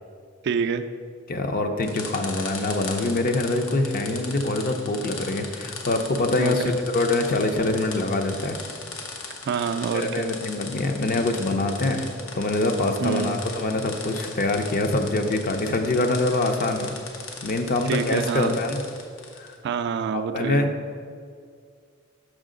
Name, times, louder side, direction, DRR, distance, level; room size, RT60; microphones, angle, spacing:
voice 1, 0.4-0.8 6.4-6.8 9.4-10.3 13.0-13.4 17.9-18.6 19.6-20.7, right 6 dB, 55° right, 8 dB, 0.3 m, -27 dB
voice 2, 1.3-8.6 9.9-12.1 12.3-16.9 17.4-18.8 19.4-19.5 20.1-20.7, left 2 dB, 45° left, 5 dB, 0.5 m, -24 dB
sound 1, 1.8-19.6, left 4 dB, 80° left, 0.8 m, -38 dB
6.3 x 5.6 x 3.8 m, 2.1 s
head